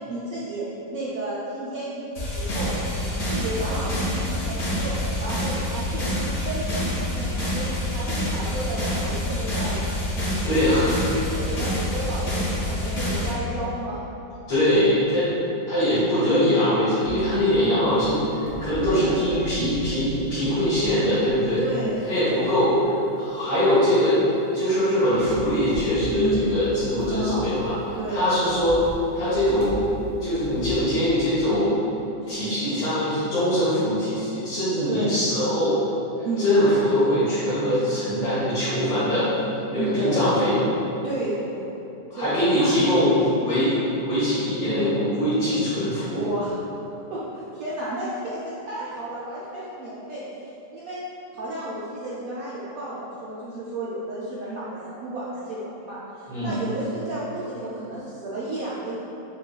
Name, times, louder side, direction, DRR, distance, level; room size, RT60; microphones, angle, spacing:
voice 1, 0.1-2.0 2.3-2.7 3.0-10.9 11.2-14.0 17.9-18.3 18.9-19.2 21.6-22.5 23.3-23.6 25.2-25.5 26.1-26.4 27.0-27.4 28.0-28.3 32.2-32.8 34.9-35.2 36.2-36.4 39.8-40.2 41.0-41.8 42.1-43.0 44.6-44.9 46.1-46.6 47.1-51.0 51.3-58.9, right 1 dB, 75° right, -9 dB, 0.8 m, -32 dB
sound 1, 2.1-13.3, left 1 dB, 60° left, 1.8 m, -27 dB
voice 2, 10.5-10.9 14.5-15.3 15.7-18.2 18.6-21.6 22.1-27.7 28.1-28.8 29.1-29.8 30.2-31.7 32.3-35.8 36.4-39.3 39.7-40.6 42.1-46.3 56.3-56.5, equal, 75° left, -14 dB, 1.9 m, -22 dB
sound 2, 17.0-22.2 22.7-22.9 24.8-24.9 25.1-28.0 28.3-30.7, right 1 dB, 25° right, 0.8 m, -36 dB
6.7 x 2.4 x 2.3 m, 2.9 s
omnidirectional pair, 2.1 m